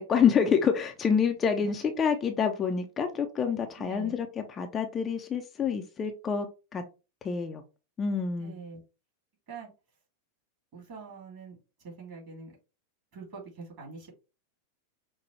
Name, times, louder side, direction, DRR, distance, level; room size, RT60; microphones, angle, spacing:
voice 1, 0.0-6.5 6.7-6.8 7.2-7.6 8.0-8.5, left 6 dB, 25° left, 0.5 m, -27 dB
voice 2, 3.8-4.2 8.4-8.8 9.5-9.7 10.7-11.6 11.8-12.5 13.1-14.1, right 5 dB, 45° right, 2.5 m, -44 dB
5.6 x 2.2 x 3.1 m
figure-of-eight pair, 90°, 0 cm